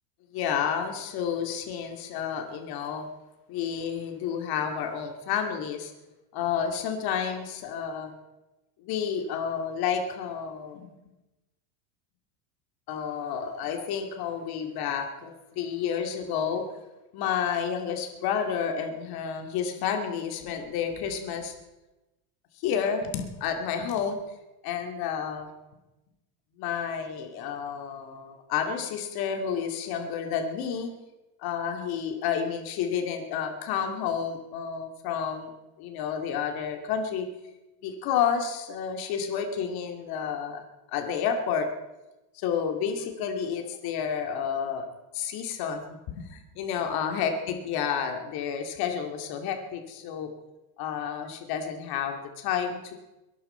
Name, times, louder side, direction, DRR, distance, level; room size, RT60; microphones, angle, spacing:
voice 1, 0.3-3.1 3.5-5.9 6.3-8.1 8.8-10.9 12.9-16.6 17.1-21.5 22.6-24.2 24.6-25.5 26.6-30.9 31.4-35.5 35.8-37.3 37.8-40.6 40.9-41.7 42.3-44.9 45.1-50.3 50.8-52.9, left 7 dB, 50° left, 4 dB, 2.5 m, -30 dB
22.5 x 11.0 x 4.4 m, 1.0 s
supercardioid pair, 130°, 47 cm